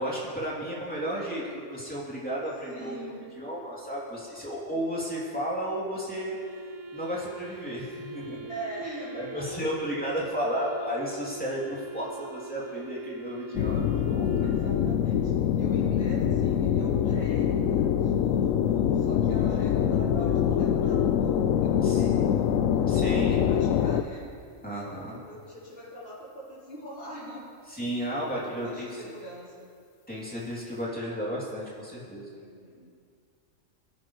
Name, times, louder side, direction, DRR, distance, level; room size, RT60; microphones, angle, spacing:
voice 1, 0.0-6.4 6.9-8.5 9.1-14.5 21.8-22.0 22.9-23.4 24.6-25.2 27.7-28.9 30.1-32.3, equal, 5° left, -7 dB, 3.1 m, -33 dB
voice 2, 2.7-3.3 8.5-9.6 14.4-22.9 23.1-28.0 28.2-29.7 32.3-32.9, right 1 dB, 50° left, -8 dB, 4.4 m, -43 dB
Wind instrument woodwind instrument, 6.1-15.3, right 3 dB, 40° right, 0.9 m, -43 dB
sound 1, 13.5-24.0, left 9 dB, 90° left, 1.0 m, -24 dB
24.0 x 10.0 x 3.3 m, 2.3 s
omnidirectional pair, 1.3 m